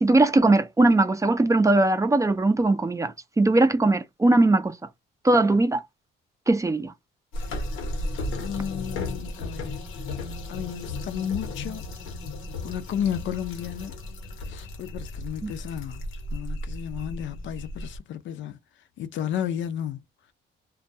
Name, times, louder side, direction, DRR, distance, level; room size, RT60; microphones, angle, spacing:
voice 1, 0.0-4.7 5.2-5.8 6.5-6.9 15.4-15.5, right 2 dB, 15° right, 0.4 m, -20 dB
sound 1, 7.3-18.0, left 2 dB, 90° left, 0.9 m, -34 dB
voice 2, 8.4-9.8 10.5-11.8 12.6-14.0 14.5-18.6 19.0-20.0, left 9 dB, 70° left, 0.5 m, -32 dB
2.2 x 2.2 x 2.6 m
cardioid pair, 90°, 20 cm